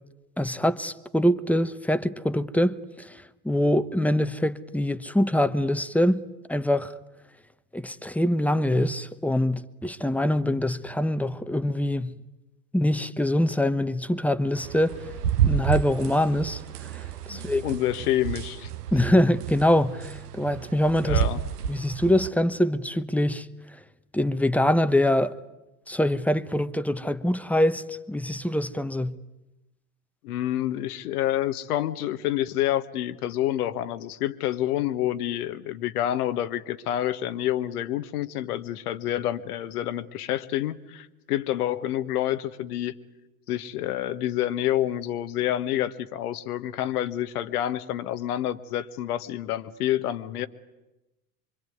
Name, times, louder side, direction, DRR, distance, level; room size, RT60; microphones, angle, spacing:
voice 1, 0.4-6.2 6.5-6.9 7.7-12.2 12.7-15.0 15.4-17.8 18.9-21.2 21.7-23.5 24.1-25.3 25.9-29.2, left 1 dB, 5° left, 1.0 m, -24 dB
sound 1, 14.6-22.3, right 10 dB, 80° right, 1.1 m, -30 dB
voice 2, 17.3-18.7 21.0-21.4 30.2-42.9 43.5-50.5, left 12 dB, 75° left, 1.4 m, -28 dB
25.0 x 25.0 x 9.4 m
hypercardioid pair, 75°, 46 cm